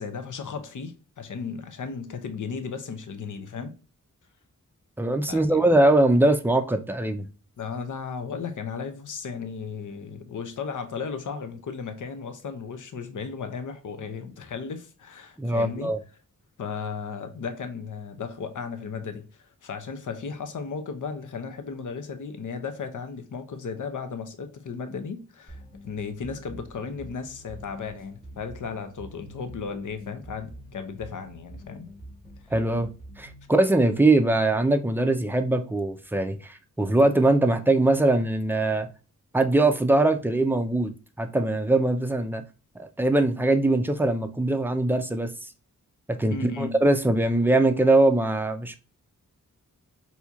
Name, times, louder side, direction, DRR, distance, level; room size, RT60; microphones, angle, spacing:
voice 1, 0.0-3.8 5.3-5.8 7.6-15.9 16.6-31.9 46.3-46.8, left 5 dB, 70° left, 0.7 m, -35 dB
voice 2, 5.0-7.3 15.4-16.0 32.5-32.9 33.2-38.9 39.3-40.9 41.2-42.4 42.7-45.5 46.1-48.8, right 2 dB, 5° right, 0.4 m, -22 dB
sound 1, 25.5-33.5, equal, 30° left, 1.1 m, -45 dB
4.2 x 2.8 x 2.3 m
wide cardioid pair, 95°, 32 cm